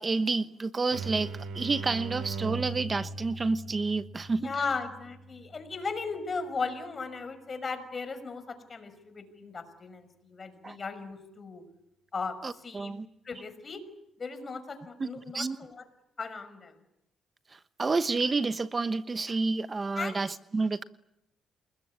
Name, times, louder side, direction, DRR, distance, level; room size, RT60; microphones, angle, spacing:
voice 1, 0.0-4.5 10.6-10.8 12.4-13.1 15.0-15.1 15.3-15.6 17.5-20.8, right 3 dB, 30° right, 12 dB, 1.0 m, -29 dB
sound 1, 0.9-6.4, right 4 dB, 85° right, 4.0 m, -40 dB
voice 2, 4.4-11.6 12.1-12.4 12.6-12.9 13.2-13.8 14.2-15.9 16.2-16.7 20.0-20.2, left 4 dB, 35° left, 10 dB, 5.9 m, -36 dB
28.5 x 21.0 x 9.7 m, 0.83 s
cardioid pair, 90°, 0 cm